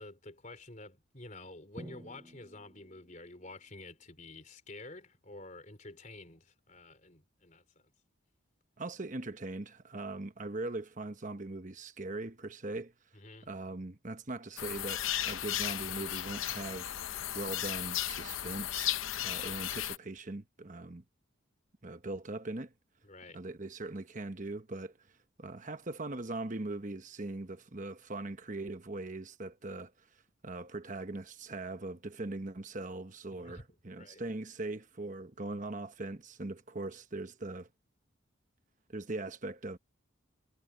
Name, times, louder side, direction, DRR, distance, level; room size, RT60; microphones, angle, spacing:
voice 1, 0.0-7.6 13.1-13.5 23.0-23.4 33.4-33.6 34.0-34.2, left 2 dB, 35° left, 3.8 m, -49 dB
Drum, 1.8-3.7, equal, 20° right, 5.1 m, -51 dB
voice 2, 8.8-12.9 13.5-16.9 17.3-21.0 21.8-22.7 23.3-24.9 25.4-29.9 30.4-37.7 38.9-39.8, right 2 dB, 40° right, 1.1 m, -40 dB
sound 1, 14.6-20.0, left 12 dB, 75° left, 0.7 m, -35 dB
head